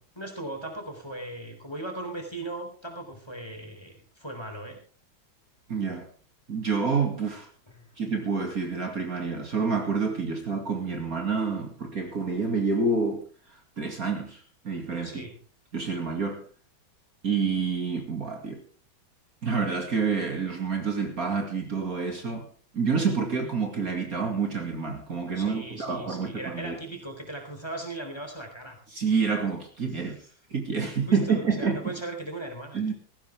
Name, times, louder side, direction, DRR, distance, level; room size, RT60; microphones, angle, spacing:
voice 1, 0.0-4.8 7.7-8.0 15.0-15.4 25.4-29.0 31.1-32.8, right 2 dB, 15° left, 3.6 m, -38 dB
voice 2, 5.7-6.1 6.5-7.5 8.0-15.2 15.7-16.4 17.2-18.6 19.4-22.5 22.7-26.8 28.9-30.2 30.5-31.9 32.7-32.9, right 5 dB, 45° right, 2.7 m, -28 dB
19.0 x 15.0 x 3.5 m
omnidirectional pair, 2.1 m